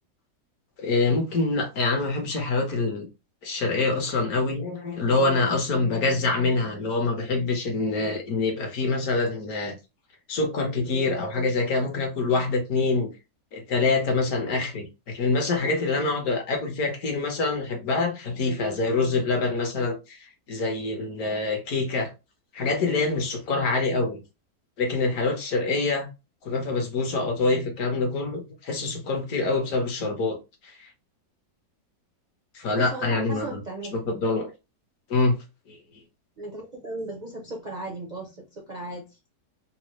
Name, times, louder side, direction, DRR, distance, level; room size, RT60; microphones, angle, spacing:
voice 1, 0.8-3.1 3.4-9.7 10.3-13.1 13.5-20.2 20.5-22.1 22.5-24.2 24.8-26.1 26.4-30.9 32.5-33.6 33.9-34.5 35.1-35.4 35.7-35.8, left 3 dB, 60° left, 1.3 m, -25 dB
voice 2, 32.7-34.1 36.4-39.1, right 2 dB, 55° right, 0.5 m, -36 dB
4.1 x 2.1 x 3.0 m
omnidirectional pair, 1.9 m